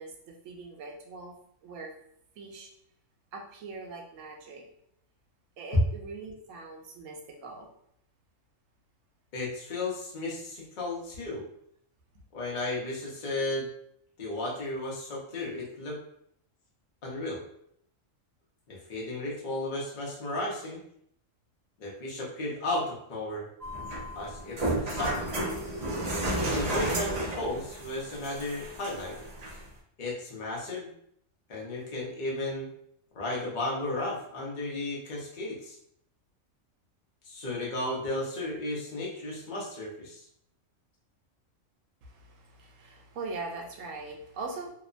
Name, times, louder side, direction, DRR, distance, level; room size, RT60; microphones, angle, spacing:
voice 1, 0.0-1.3 1.6-1.9 2.4-2.7 3.3-4.7 5.6-7.7 42.0-44.7, right 3 dB, 80° right, 1 dB, 1.0 m, -41 dB
voice 2, 9.3-11.5 12.3-13.7 14.2-16.0 17.0-17.4 18.7-20.8 21.8-23.5 24.1-25.4 26.5-29.2 30.0-30.9 31.5-32.7 33.1-35.8 37.2-40.2, left 2 dB, 45° left, -3 dB, 0.7 m, -34 dB
sound 1, 23.6-29.6, right 1 dB, 45° right, 0.6 m, -32 dB
2.8 x 2.1 x 2.4 m, 0.69 s
omnidirectional pair, 1.4 m